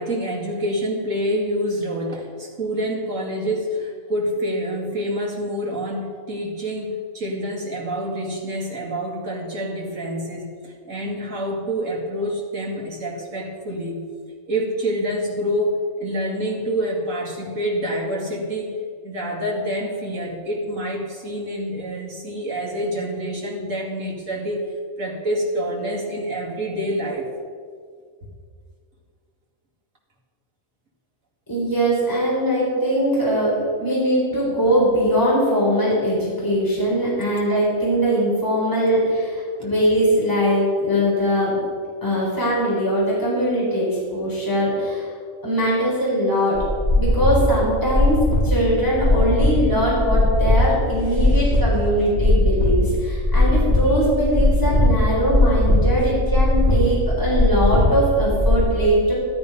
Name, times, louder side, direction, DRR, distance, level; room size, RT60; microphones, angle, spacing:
voice 1, 0.0-14.0 14.5-18.8 19.0-24.6 25.0-27.3 28.2-28.3 39.6-39.7 51.0-51.6 53.5-53.6 53.8-54.0 56.0-56.1, equal, 70° right, -2 dB, 2.8 m, -27 dB
voice 2, 31.5-41.6 42.0-45.1 45.4-46.6 47.0-48.2 48.4-59.1, equal, 15° left, -6 dB, 4.2 m, -21 dB
sound 1, 46.5-58.6, left 1 dB, 35° right, 4.3 m, -19 dB
13.0 x 12.5 x 5.4 m, 2.1 s
omnidirectional pair, 1.4 m